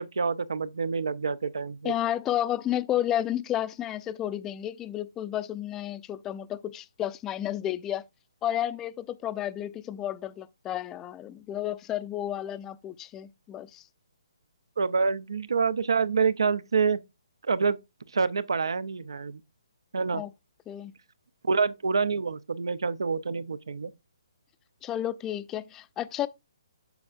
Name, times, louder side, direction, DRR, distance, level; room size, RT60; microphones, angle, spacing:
voice 1, 0.0-1.9 14.8-17.0 17.5-17.8 18.1-19.4 19.9-20.2 21.5-23.9, right 5 dB, 80° right, 0.5 m, -27 dB
voice 2, 1.8-8.0 8.4-13.8 20.1-20.3 20.7-20.9 24.8-26.3, left 11 dB, 15° left, 0.4 m, -31 dB
6.9 x 6.4 x 2.4 m
hypercardioid pair, 150°, 2 cm